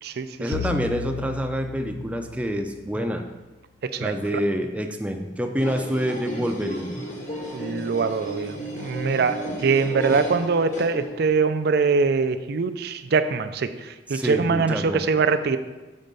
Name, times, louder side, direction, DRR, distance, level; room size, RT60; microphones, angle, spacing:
voice 1, 0.4-3.3 4.0-7.1 10.1-10.2 14.1-15.1, equal, 5° right, 4 dB, 0.5 m, -27 dB
sound 1, 0.5-3.0, left 6 dB, 85° left, 0.6 m, -34 dB
voice 2, 3.8-4.4 7.5-15.6, right 4 dB, 60° right, 11 dB, 0.4 m, -23 dB
sound 2, 5.6-11.3, right 1 dB, 45° left, 1.3 m, -34 dB
7.5 x 4.4 x 5.3 m, 1.2 s
head